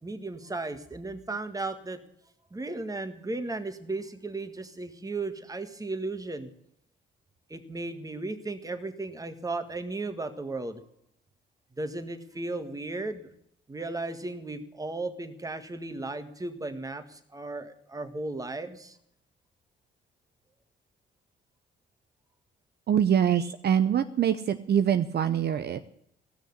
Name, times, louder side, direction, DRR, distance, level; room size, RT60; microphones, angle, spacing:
voice 1, 0.0-2.0 2.5-6.5 7.5-10.8 11.8-13.3 13.7-19.0, right 2 dB, 15° right, 8 dB, 1.7 m, -35 dB
voice 2, 22.9-25.8, right 9 dB, 55° right, 10 dB, 0.7 m, -24 dB
15.5 x 6.5 x 9.6 m, 0.71 s
cardioid pair, 90°, 20 cm